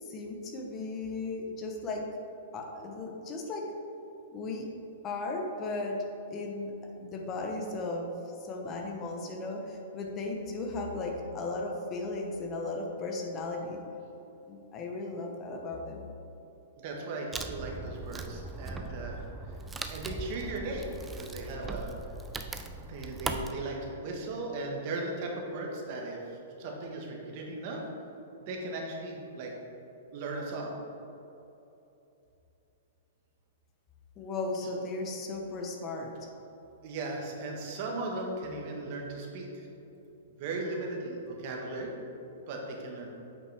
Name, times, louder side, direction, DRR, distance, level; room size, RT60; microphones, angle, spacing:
voice 1, 0.0-2.1 2.5-3.7 4.3-4.7 5.0-6.7 7.0-8.1 8.4-13.8 14.5-16.1 34.2-36.1, left 2 dB, 25° left, 2 dB, 0.9 m, -36 dB
voice 2, 16.8-19.2 19.9-20.9 21.1-21.9 22.8-27.8 28.4-29.5 30.1-30.7 36.8-39.7 40.2-41.9 42.5-43.1, right 2 dB, 45° right, 0 dB, 1.4 m, -37 dB
Wood, 17.3-23.5, right 3 dB, 10° right, 0.4 m, -39 dB
7.9 x 5.7 x 3.4 m, 3.0 s
hypercardioid pair, 145°, 0 cm